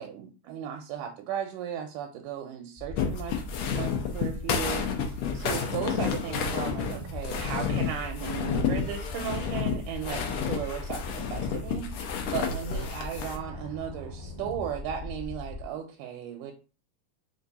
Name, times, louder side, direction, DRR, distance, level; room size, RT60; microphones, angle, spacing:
voice 1, 0.0-16.5, right 9 dB, 85° right, 3 dB, 2.1 m, -36 dB
sound 1, 2.8-15.6, left 2 dB, 40° right, 0.6 m, -40 dB
sound 2, 3.0-13.4, left 6 dB, 90° left, 1.2 m, -30 dB
sound 3, 5.9-11.3, left 4 dB, 70° left, 1.5 m, -47 dB
5.1 x 2.4 x 4.0 m, 0.34 s
omnidirectional pair, 3.7 m